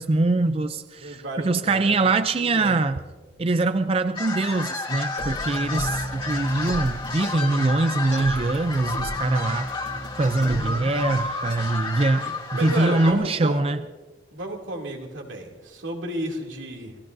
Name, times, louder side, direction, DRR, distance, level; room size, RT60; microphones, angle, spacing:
voice 1, 0.0-3.0 3.4-13.8, right 2 dB, 30° right, 10 dB, 0.4 m, -23 dB
voice 2, 1.0-2.8 10.4-10.9 12.2-13.6 14.3-17.0, right 1 dB, 85° right, 1 dB, 2.7 m, -33 dB
sound 1, 4.1-13.1, left 3 dB, 25° left, 2.1 m, -31 dB
sound 2, 5.2-11.2, equal, 65° left, 2.9 m, -33 dB
28.5 x 18.0 x 2.7 m, 1.3 s
head